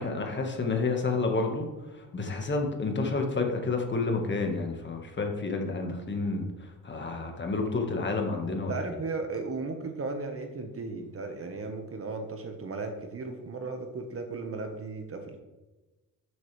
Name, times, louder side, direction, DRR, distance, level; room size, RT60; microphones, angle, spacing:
voice 1, 0.0-6.5 6.8-8.8, left 3 dB, 30° left, 2 dB, 1.7 m, -30 dB
voice 2, 8.5-15.4, right 3 dB, 40° right, 5 dB, 1.5 m, -36 dB
12.0 x 7.9 x 3.5 m, 1.1 s
cardioid pair, 130°, 34 cm